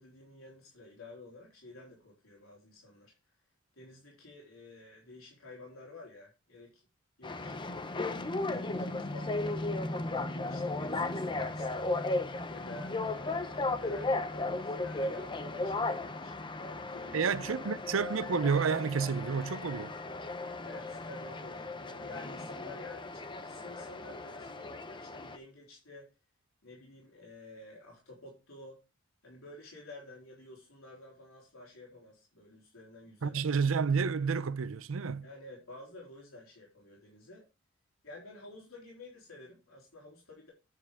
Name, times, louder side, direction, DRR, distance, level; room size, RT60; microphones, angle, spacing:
voice 1, 0.0-3.1 3.8-6.8 7.2-7.7 8.1-9.6 10.1-11.9 12.5-17.3 17.6-17.8 20.6-26.1 26.6-28.8 29.2-33.4 35.2-37.4 38.0-40.5, left 2 dB, 80° left, 3.9 m, -51 dB
sound 1, 7.2-25.4, left 2 dB, 25° left, 0.7 m, -36 dB
voice 2, 17.1-19.9 33.2-35.3, right 5 dB, 70° right, 0.6 m, -30 dB
9.7 x 7.1 x 3.6 m
head